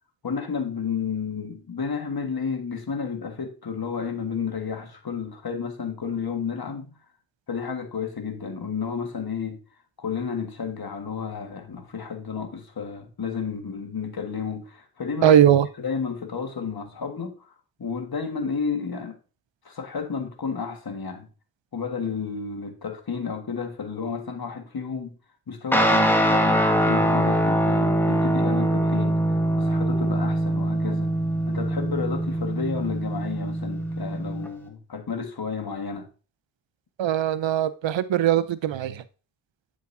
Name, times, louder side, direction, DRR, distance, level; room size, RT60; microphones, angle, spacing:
voice 1, 0.2-7.0 7.5-9.6 10.0-15.3 15.8-17.5 17.8-19.2 19.6-21.3 21.7-25.2 25.5-31.1 31.5-36.1, left 6 dB, 50° left, 1.6 m, -32 dB
voice 2, 15.2-15.7 37.0-39.0, right 10 dB, 70° right, 0.6 m, -20 dB
Guitar, 25.7-34.5, right 1 dB, 5° left, 1.4 m, -23 dB
9.3 x 5.0 x 2.7 m
cardioid pair, 40°, 46 cm